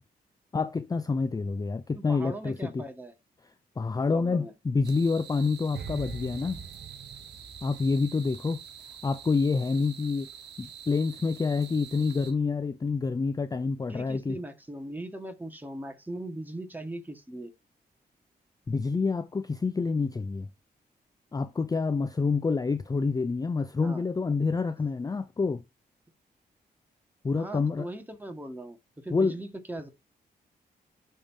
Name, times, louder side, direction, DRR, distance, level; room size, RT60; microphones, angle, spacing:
voice 1, 0.5-2.8 3.8-6.6 7.6-8.6 9.0-10.3 10.6-14.4 18.7-20.5 21.3-25.6 27.2-27.9 29.1-29.4, left 4 dB, 20° left, 0.4 m, -27 dB
voice 2, 1.9-3.1 4.1-4.5 13.9-17.5 23.8-24.1 27.3-29.9, right 1 dB, 10° right, 1.5 m, -39 dB
sound 1, 4.8-12.3, right 8 dB, 90° right, 1.1 m, -47 dB
sound 2, 5.7-8.9 9.2-9.5, right 6 dB, 70° right, 0.8 m, -43 dB
11.0 x 3.7 x 2.7 m
cardioid pair, 70°, 17 cm